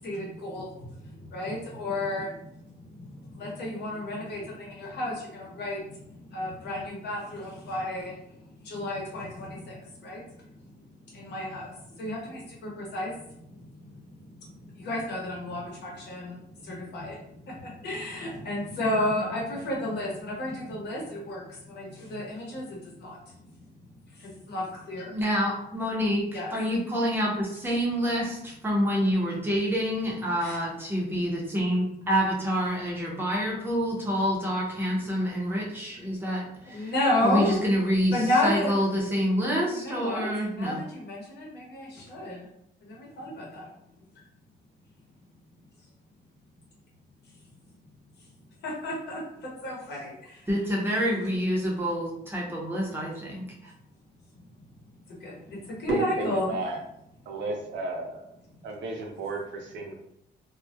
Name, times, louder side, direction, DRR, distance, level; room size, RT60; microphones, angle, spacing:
voice 1, 0.0-10.7 11.1-23.3 24.1-25.2 26.3-26.6 30.4-30.6 36.7-37.6 38.1-38.7 39.8-42.4 42.8-43.7 48.6-50.5 55.2-56.6, left 1 dB, 65° left, -3 dB, 0.9 m, -32 dB
voice 2, 25.1-36.9 37.2-38.2 38.4-40.8 50.5-53.7, equal, 10° right, -3 dB, 0.6 m, -27 dB
voice 3, 55.9-56.8 57.3-58.3 58.6-59.9, right 2 dB, 85° right, 1 dB, 0.6 m, -33 dB
2.3 x 2.0 x 2.7 m, 0.76 s
cardioid pair, 155°, 19 cm